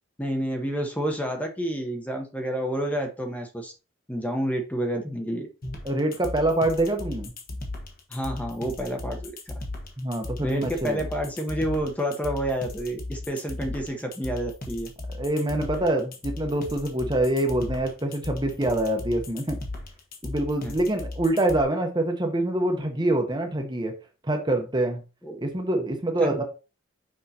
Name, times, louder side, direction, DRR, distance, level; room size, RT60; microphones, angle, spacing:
voice 1, 0.2-3.7 4.1-5.5 8.1-9.3 10.4-14.9 20.6-20.7 25.2-25.4 26.2-26.4, equal, 5° left, 3 dB, 0.9 m, -29 dB
sound 1, 5.6-21.6, left 2 dB, 45° left, 1.3 m, -36 dB
voice 2, 5.8-7.3 10.0-11.0 15.1-19.6 20.2-23.9 24.3-25.0 25.4-26.4, right 1 dB, 20° right, 4 dB, 0.9 m, -25 dB
6.5 x 5.3 x 2.8 m, 0.32 s
head